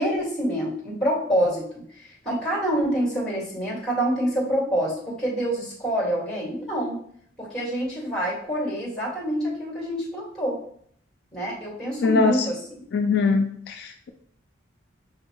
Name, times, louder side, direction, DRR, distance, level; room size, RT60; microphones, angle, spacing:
voice 1, 0.0-7.0 7.4-10.6 11.3-12.8, equal, 5° left, -5 dB, 1.6 m, -26 dB
voice 2, 12.0-12.5 12.9-14.1, left 4 dB, 60° left, 4 dB, 0.3 m, -22 dB
6.4 x 2.7 x 2.8 m, 0.64 s
head